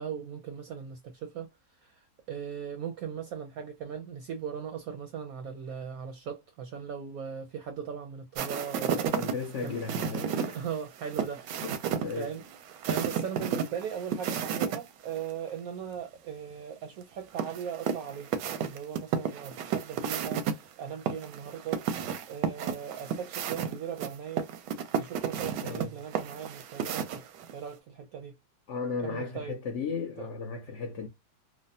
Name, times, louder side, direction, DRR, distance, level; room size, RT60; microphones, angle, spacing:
voice 1, 0.0-1.5 1.8-9.1 9.6-9.9 10.3-11.4 12.2-12.4 12.9-18.3 18.6-21.8 22.3-24.5 25.0-27.3 27.5-28.3 29.0-29.6 30.2-30.3, right 7 dB, 70° right, 0.9 m, -38 dB
sound 1, 8.4-14.8 15.1-15.2 17.4-20.5 21.1-27.5, right 7 dB, 85° right, 1.2 m, -32 dB
voice 2, 9.2-10.6 11.6-11.8 12.0-12.3 25.6-25.9 28.7-31.1, left 5 dB, 75° left, 0.6 m, -35 dB
3.2 x 2.0 x 2.6 m
omnidirectional pair, 1.8 m